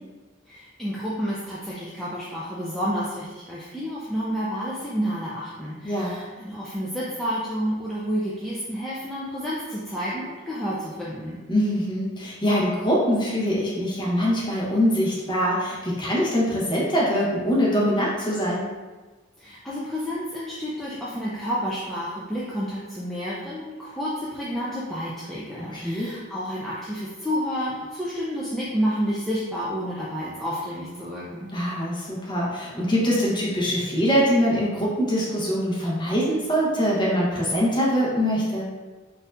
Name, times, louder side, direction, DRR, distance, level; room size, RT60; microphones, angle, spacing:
voice 1, 0.5-11.4 19.4-31.5, equal, ahead, -9 dB, 0.4 m, -30 dB
voice 2, 5.8-6.1 11.5-18.7 25.6-26.1 31.5-38.7, equal, 25° left, -6 dB, 0.9 m, -23 dB
4.3 x 2.6 x 2.5 m, 1.3 s
head